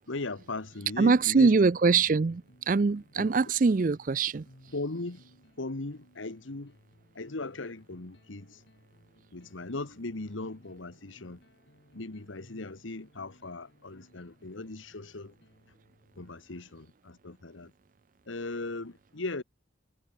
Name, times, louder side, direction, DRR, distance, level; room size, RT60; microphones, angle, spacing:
voice 1, 0.1-1.5 1.8-1.9 3.1-3.3 4.7-5.2 5.6-6.7 7.1-8.6 9.3-11.4 11.9-15.3 16.2-17.7 18.3-19.4, left 2 dB, 90° left, 1.4 m, -38 dB
sound 1, 0.6-16.5, equal, 65° left, 7.8 m, -62 dB
voice 2, 1.0-4.4, right 4 dB, 45° right, 0.4 m, -23 dB
head